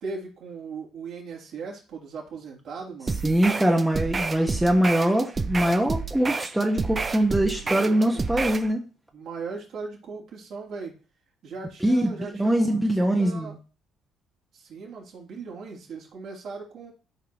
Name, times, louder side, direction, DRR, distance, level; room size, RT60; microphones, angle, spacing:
voice 1, 0.0-3.2 7.6-8.3 9.1-10.9 11.4-13.5 14.5-16.9, right 4 dB, 60° right, -2 dB, 3.0 m, -38 dB
sound 1, 3.1-8.7, right 4 dB, 30° right, 0.8 m, -30 dB
voice 2, 3.2-8.8 11.8-13.5, right 1 dB, 10° right, 1 dB, 1.4 m, -23 dB
12.5 x 4.7 x 3.0 m, 0.35 s
hypercardioid pair, 50°, 0 cm